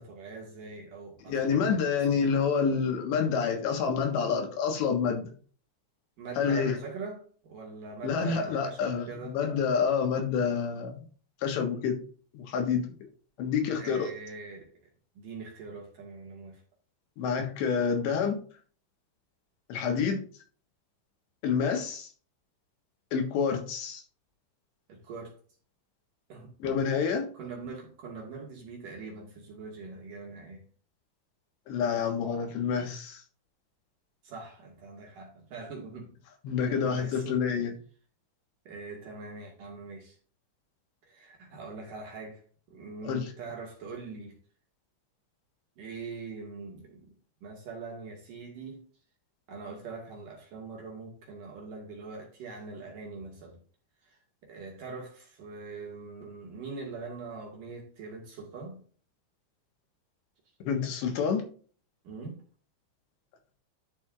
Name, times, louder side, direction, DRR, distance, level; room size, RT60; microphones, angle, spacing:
voice 1, 0.0-2.3 6.2-9.4 13.7-14.7 15.1-16.6 24.9-25.4 26.3-26.7 27.3-30.7 34.2-36.1 36.7-37.7 38.7-40.2 41.0-42.4 42.7-44.4 45.8-47.1 47.4-48.8 49.5-53.6 54.0-58.8 62.0-62.4, right 4 dB, 55° right, 2.8 m, -43 dB
voice 2, 1.3-5.3 6.4-6.8 8.0-11.1 11.4-12.0 12.3-12.9 13.4-14.1 17.2-18.4 19.7-20.2 21.4-22.1 23.1-24.0 26.6-27.3 31.7-33.2 36.5-37.7 43.0-43.3 60.7-61.4, left 6 dB, 70° left, 3.6 m, -28 dB
11.5 x 6.8 x 2.6 m
omnidirectional pair, 5.4 m